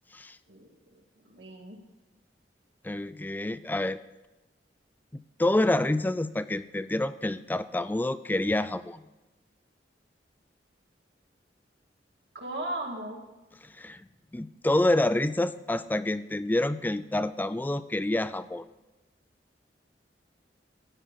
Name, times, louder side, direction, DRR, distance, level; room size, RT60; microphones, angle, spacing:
voice 1, 0.5-1.8 12.4-13.2, right 1 dB, 80° right, 1 dB, 2.4 m, -37 dB
voice 2, 2.8-4.0 5.1-9.0 13.8-14.0 14.3-18.6, left 1 dB, 10° left, 14 dB, 0.3 m, -28 dB
14.0 x 10.0 x 3.7 m, 1.1 s
head